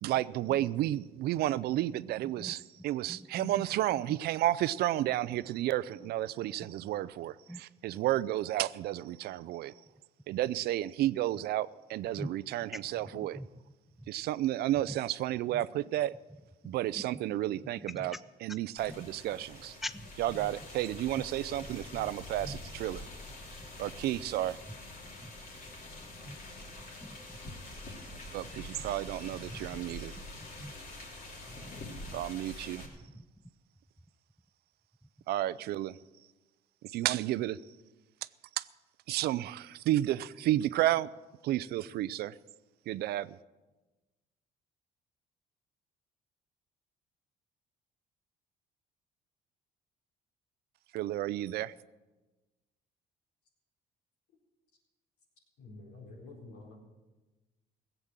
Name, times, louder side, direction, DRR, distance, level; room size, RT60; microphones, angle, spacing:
voice 1, 0.0-9.7 10.3-13.4 14.1-16.1 16.6-18.2 18.4-19.8 20.2-23.0 23.8-24.6 28.3-30.1 32.1-32.9 35.3-36.0 36.8-37.6 38.6-38.7 39.1-41.1 41.4-42.4 42.9-43.4 50.9-51.7, right 14 dB, 70° right, 0.5 m, -32 dB
voice 2, 3.1-3.6 4.1-4.2 6.6-6.7 7.5-7.6 12.2-12.3 12.7-12.8 13.1-13.5 14.0-14.1 14.9-15.0 15.5-15.6 16.6-16.7 17.1-17.4 17.8-18.2 18.9-19.0 19.8-20.5 21.2-21.3 21.6-22.0 22.4-22.6 25.2-25.3 26.3-26.4 27.1-27.5 28.4-28.7 29.5-30.0 30.4-30.7 31.5-31.8 32.8-32.9 33.1-33.3, equal, ahead, 0.4 m, -44 dB
sound 1, 18.8-32.9, left 2 dB, 55° left, 3.3 m, -46 dB
voice 3, 55.6-56.8, left 2 dB, 85° left, 4.3 m, -49 dB
17.0 x 8.1 x 7.4 m
cardioid pair, 110°, 17 cm